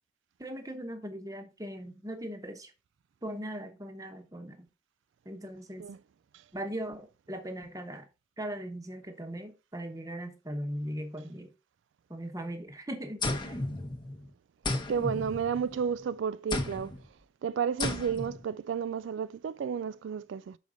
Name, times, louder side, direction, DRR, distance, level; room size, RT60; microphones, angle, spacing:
voice 1, 0.4-2.7 3.2-4.7 5.2-5.9 6.5-8.1 8.4-11.5 12.1-13.6, equal, 20° right, 0.9 m, -39 dB
sound 1, 13.2-14.3 14.6-15.9 16.5-17.0 17.8-18.4, left 2 dB, 25° left, 0.8 m, -34 dB
voice 2, 14.9-16.9 17.4-20.6, right 7 dB, 85° right, 0.3 m, -32 dB
6.5 x 4.9 x 3.9 m
head